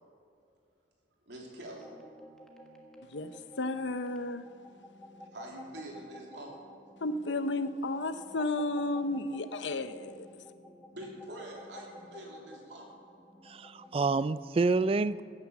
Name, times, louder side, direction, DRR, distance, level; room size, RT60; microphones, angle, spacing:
voice 1, 1.2-1.9 5.3-6.6 10.9-12.9, right 1 dB, 75° right, -1 dB, 3.2 m, -45 dB
sound 1, 1.8-14.1, left 1 dB, 5° left, 1.5 m, -52 dB
voice 2, 3.1-4.4 7.0-10.3, left 2 dB, 80° left, 11 dB, 0.8 m, -33 dB
voice 3, 13.5-15.2, right 3 dB, 30° right, 17 dB, 0.3 m, -28 dB
15.5 x 9.7 x 7.0 m, 2.5 s
head